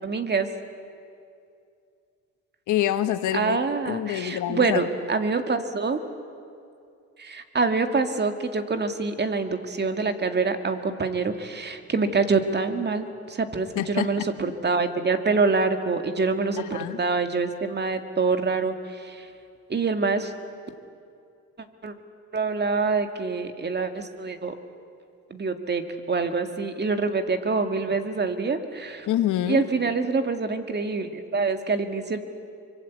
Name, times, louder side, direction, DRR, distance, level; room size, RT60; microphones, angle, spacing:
voice 1, 0.0-0.5 3.3-6.0 7.2-19.3 19.7-20.3 21.8-21.9 22.3-24.5 25.3-25.8 26.1-29.1 29.5-32.2, right 4 dB, 35° right, 7 dB, 2.0 m, -26 dB
voice 2, 2.7-3.6 3.8-4.8 13.7-14.1 14.4-14.5 16.6-17.0 29.1-29.6, left 12 dB, 85° left, 10 dB, 1.4 m, -26 dB
24.5 x 23.5 x 8.4 m, 2.5 s
cardioid pair, 90°, 30 cm